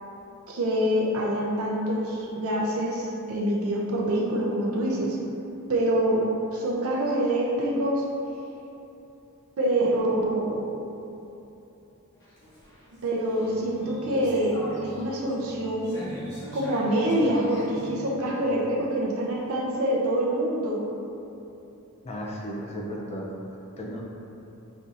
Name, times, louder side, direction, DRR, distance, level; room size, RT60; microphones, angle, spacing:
voice 1, 0.5-5.2 5.7-6.2 6.5-8.0 9.6-10.6 13.0-16.0 16.5-20.8, right 1 dB, 65° right, -3 dB, 0.6 m, -26 dB
sound 1, 12.1-19.0, equal, 50° left, 1.2 m, -41 dB
voice 2, 22.0-24.0, equal, 30° left, -1 dB, 0.4 m, -35 dB
5.2 x 2.8 x 2.5 m, 2.9 s
head